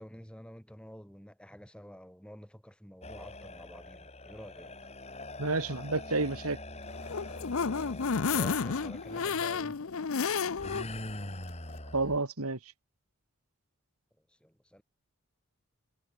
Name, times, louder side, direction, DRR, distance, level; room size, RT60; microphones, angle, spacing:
voice 1, 0.0-4.9 8.3-11.3 14.3-14.8, equal, 5° left, 5.8 m, -50 dB
sound 1, 3.0-9.5 10.6-12.2, left 2 dB, 30° left, 6.3 m, -43 dB
voice 2, 5.4-6.6 11.9-12.6, right 3 dB, 85° right, 2.4 m, -30 dB
sound 2, 6.9-10.9 11.3-11.4 11.7-11.8, left 5 dB, 70° left, 0.7 m, -31 dB
head